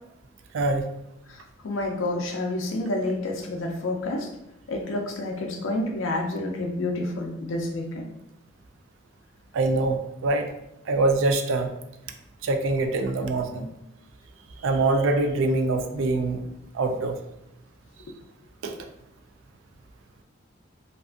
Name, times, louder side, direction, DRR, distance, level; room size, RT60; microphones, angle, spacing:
voice 1, 1.6-4.3 4.7-8.1, left 2 dB, 75° left, 2 dB, 0.4 m, -29 dB
voice 2, 9.5-10.5 10.9-11.7 12.4-13.7 14.6-16.4 16.7-17.1 18.6-18.7, right 2 dB, 75° right, 6 dB, 0.3 m, -24 dB
2.5 x 2.3 x 2.4 m, 0.90 s
head